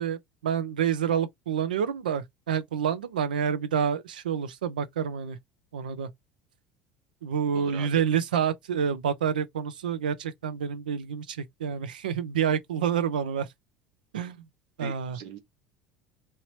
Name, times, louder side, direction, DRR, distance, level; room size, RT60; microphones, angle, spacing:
voice 1, 0.0-5.4 5.7-6.1 7.2-13.5 14.1-14.4 14.8-15.2, right 8 dB, 90° right, 0.4 m, -28 dB
voice 2, 7.5-8.0 14.8-15.4, right 7 dB, 70° right, 0.9 m, -41 dB
2.9 x 2.8 x 3.1 m
hypercardioid pair, 80°, 5 cm